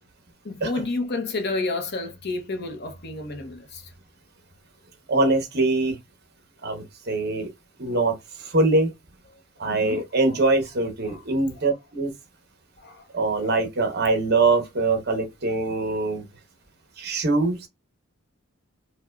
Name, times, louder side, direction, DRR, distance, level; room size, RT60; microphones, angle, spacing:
voice 1, 0.4-3.9 9.7-10.0 11.0-11.2 11.6-11.7 12.8-13.1 13.4-13.5, left 3 dB, 50° left, 0.8 m, -30 dB
voice 2, 5.1-6.0 6.6-7.5 7.8-8.9 9.6-12.1 13.1-16.2 17.0-17.7, right 2 dB, 50° right, 1.0 m, -23 dB
4.7 x 2.2 x 2.4 m
head